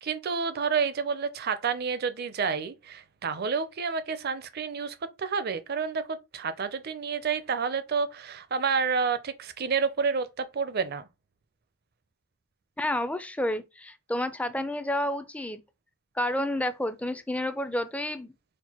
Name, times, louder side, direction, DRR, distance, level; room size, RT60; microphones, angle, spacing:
voice 1, 0.0-11.1, right 5 dB, 50° right, 0.5 m, -29 dB
voice 2, 12.8-15.6 16.2-18.3, left 1 dB, 5° left, 0.4 m, -30 dB
4.4 x 2.2 x 4.2 m
head